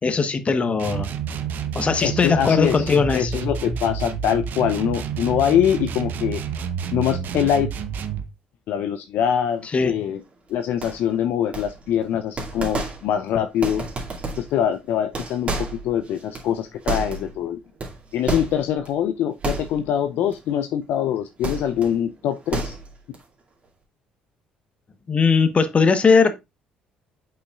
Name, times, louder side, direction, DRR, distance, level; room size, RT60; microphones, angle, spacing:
voice 1, 0.0-1.1 1.7-3.4 9.6-10.0 25.1-26.3, left 5 dB, 35° left, 1.1 m, -19 dB
sound 1, 0.8-8.3, right 7 dB, 55° right, 0.8 m, -29 dB
voice 2, 2.0-6.4 6.9-7.7 8.7-10.2 10.5-13.9 14.4-15.5 15.8-17.6 18.1-22.8, left 9 dB, 65° left, 0.5 m, -23 dB
sound 2, 10.8-11.2 11.5-12.0 12.4-13.2 13.6-14.6 15.0-17.4 17.8-18.9 19.4-20.0 20.3-20.5 21.4-22.0 22.3-23.2, right 3 dB, 35° right, 2.3 m, -30 dB
8.1 x 5.5 x 2.4 m
hypercardioid pair, 55°, 4 cm